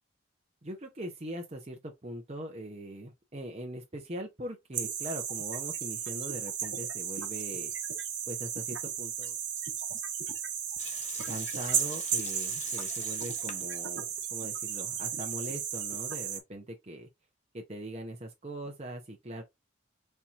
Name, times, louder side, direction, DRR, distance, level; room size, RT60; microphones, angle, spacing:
voice 1, 0.6-7.7 8.3-9.4 11.3-17.1 17.5-19.4, right 1 dB, 30° right, 0.7 m, -41 dB
sound 1, 4.7-16.4, right 8 dB, 60° right, 1.0 m, -34 dB
Water tap faucet / Sink (filling or washing) / Liquid, 10.8-13.8 14.1-14.2 14.8-15.4, left 8 dB, 35° left, 0.7 m, -44 dB
4.4 x 2.9 x 3.5 m
head